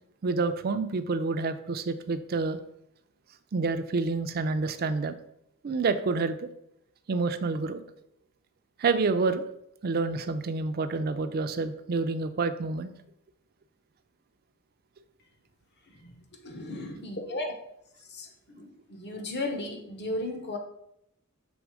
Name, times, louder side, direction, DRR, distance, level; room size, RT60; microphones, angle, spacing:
voice 1, 0.2-2.6 3.5-5.1 5.6-6.5 7.1-7.8 8.8-9.6 9.8-12.9, right 3 dB, 45° right, 0.4 m, -28 dB
voice 2, 15.9-17.5 18.0-20.6, left 2 dB, 50° left, 1.0 m, -36 dB
6.2 x 3.6 x 4.8 m
head